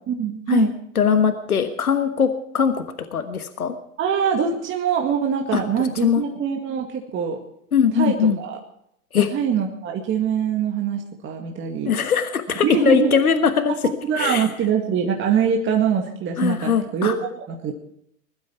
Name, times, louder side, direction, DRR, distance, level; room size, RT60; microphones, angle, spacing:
voice 1, 0.1-0.7 4.0-7.4 7.9-8.6 9.2-12.0 12.6-13.2 13.8-17.8, right 7 dB, 25° right, 2 dB, 2.0 m, -23 dB
voice 2, 0.9-2.7 3.1-3.7 5.5-6.2 7.7-8.4 9.1-9.3 11.8-13.7 14.2-14.4 16.4-17.1, left 7 dB, 80° left, 8 dB, 1.5 m, -20 dB
21.5 x 12.0 x 4.6 m, 0.72 s
hypercardioid pair, 100°, 43 cm